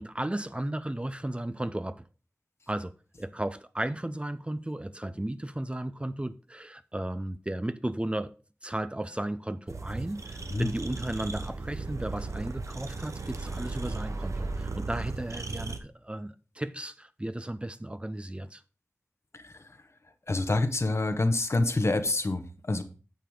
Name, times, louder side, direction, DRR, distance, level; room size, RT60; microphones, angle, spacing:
voice 1, 0.0-2.0 2.7-2.9 3.2-8.3 8.6-18.6, right 1 dB, 20° right, 0.6 m, -34 dB
sound 1, 9.7-15.8, right 3 dB, 85° right, 0.9 m, -36 dB
voice 2, 20.3-22.8, left 2 dB, 65° left, 1.0 m, -27 dB
9.2 x 6.7 x 3.6 m
wide cardioid pair, 45°, 5 cm